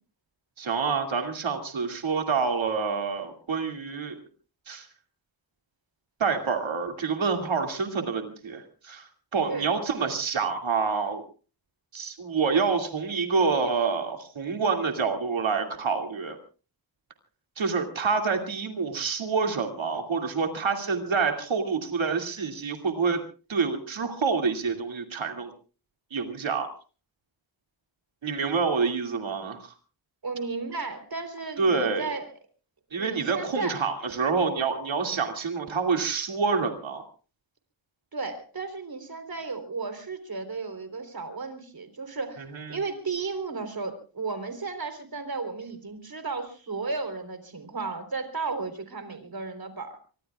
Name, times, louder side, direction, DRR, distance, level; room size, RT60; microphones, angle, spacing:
voice 1, 0.6-4.2 4.7-4.9 6.2-11.2 11.9-16.4 17.6-23.2 23.5-25.5 26.1-26.7 28.2-29.7 31.6-32.1 32.9-37.0 42.5-42.8, right 5 dB, 85° right, 4 dB, 2.6 m, -27 dB
voice 2, 30.2-32.3 33.0-33.8 38.1-42.4 42.7-50.0, right 4 dB, 50° right, 8 dB, 3.9 m, -34 dB
24.5 x 24.0 x 2.4 m, 0.36 s
wide cardioid pair, 95°, 45 cm